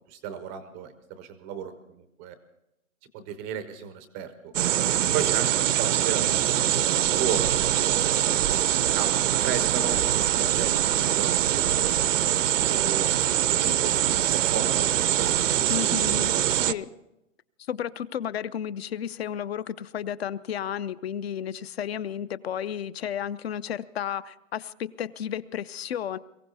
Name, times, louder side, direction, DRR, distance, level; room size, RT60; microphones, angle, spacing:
voice 1, 0.1-2.3 3.1-4.5 5.1-5.5 5.8-6.4 6.7-7.5 8.9-9.2 9.4-13.1 13.6-16.7, right 8 dB, 10° right, 10 dB, 0.5 m, -35 dB
sound 1, 4.5-16.7, right 11 dB, 65° right, 0.7 m, -23 dB
voice 2, 15.7-16.3 16.7-16.9 17.7-26.2, left 9 dB, 50° left, 17 dB, 0.6 m, -32 dB
22.5 x 15.5 x 4.1 m, 0.88 s
hypercardioid pair, 155°, 40 cm